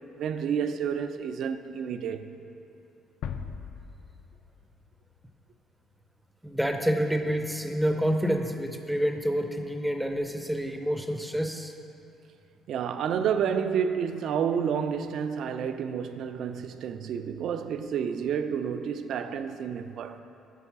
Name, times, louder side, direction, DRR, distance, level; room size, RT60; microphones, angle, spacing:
voice 1, 0.2-2.3 12.7-20.2, right 7 dB, 60° right, 0.3 m, -30 dB
sound 1, 3.2-6.1, left 7 dB, 70° left, 0.3 m, -40 dB
voice 2, 6.4-11.7, equal, 5° right, 0.5 m, -28 dB
8.2 x 4.0 x 5.8 m
cardioid pair, 130°, 0 cm